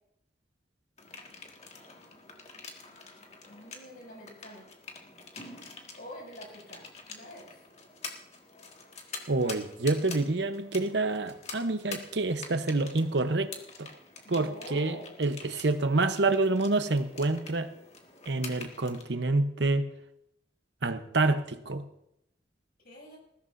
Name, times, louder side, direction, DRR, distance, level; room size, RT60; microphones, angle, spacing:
sound 1, 1.0-19.0, left 4 dB, 35° left, 1.9 m, -46 dB
voice 1, 3.5-4.7 6.0-7.6 14.2-15.2 22.8-23.2, left 1 dB, 55° left, 7.0 m, -46 dB
voice 2, 9.3-13.9 14.3-17.7 18.3-19.8 20.8-21.8, right 2 dB, 75° right, 0.9 m, -28 dB
20.5 x 15.5 x 2.7 m
head